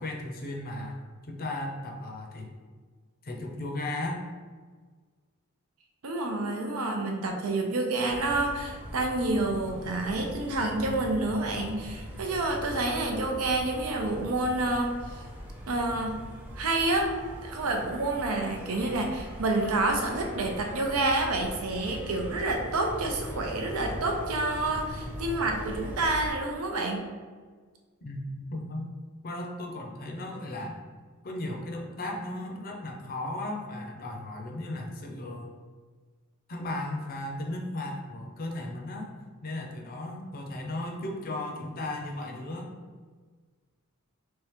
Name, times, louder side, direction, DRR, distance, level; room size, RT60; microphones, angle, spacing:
voice 1, 0.0-2.5 3.2-4.2 28.0-28.9 29.2-30.8 31.2-35.5 36.5-39.1 39.4-42.7, left 1 dB, 45° left, 1 dB, 0.5 m, -36 dB
voice 2, 6.0-14.9 15.6-16.2 16.6-17.1 17.4-27.0, right 2 dB, 85° right, 2 dB, 0.6 m, -28 dB
sound 1, 8.1-26.3, equal, 5° right, 0.6 m, -41 dB
3.5 x 3.2 x 3.0 m, 1.5 s
head